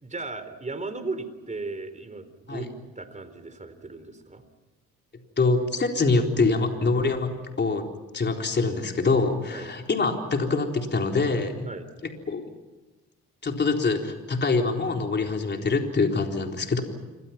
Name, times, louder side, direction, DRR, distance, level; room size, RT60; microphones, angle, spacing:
voice 1, 0.0-4.4 9.5-9.7 11.7-11.9, right 3 dB, 25° right, 10 dB, 4.0 m, -36 dB
voice 2, 5.4-7.3 7.6-7.8 8.1-11.7 12.3-12.4 13.4-16.8, left 3 dB, 35° left, 2 dB, 4.0 m, -24 dB
28.5 x 25.0 x 6.0 m, 1.2 s
cardioid pair, 90°, 30 cm